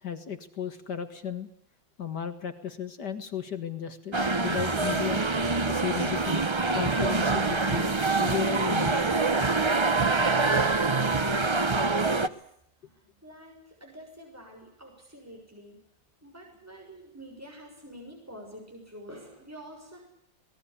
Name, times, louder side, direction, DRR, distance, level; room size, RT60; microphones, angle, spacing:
voice 1, 0.0-1.5 2.0-5.2 5.7-6.5 6.7-9.1, left 9 dB, 60° left, 9 dB, 2.2 m, -35 dB
sound 1, 4.1-12.3, right 3 dB, 30° right, 0.5 m, -25 dB
voice 2, 11.8-12.4 12.8-15.8 16.2-20.0, equal, 5° right, 1 dB, 6.6 m, -47 dB
24.5 x 20.0 x 8.5 m, 0.75 s
omnidirectional pair, 2.1 m